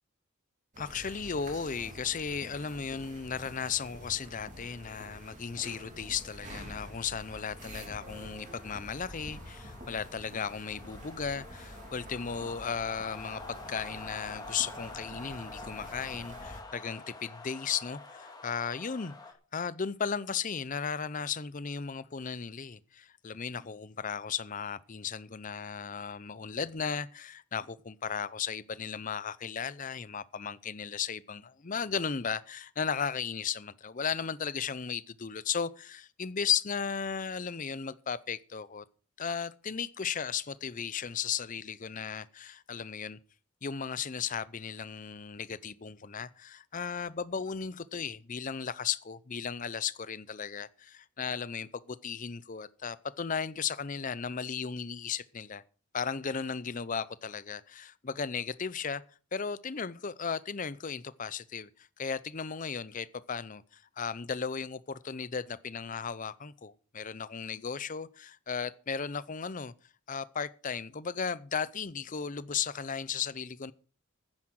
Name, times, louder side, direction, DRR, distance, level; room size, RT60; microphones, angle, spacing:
sound 1, 0.7-16.6, equal, 35° right, 2.8 m, -48 dB
voice 1, 0.8-19.1 19.5-38.8 39.2-43.2 43.6-55.6 55.9-59.0 59.3-69.7 70.1-73.7, left 6 dB, 35° left, 0.6 m, -35 dB
sound 2, 6.6-19.3, left 3 dB, 20° left, 2.1 m, -48 dB
10.5 x 9.7 x 6.3 m
head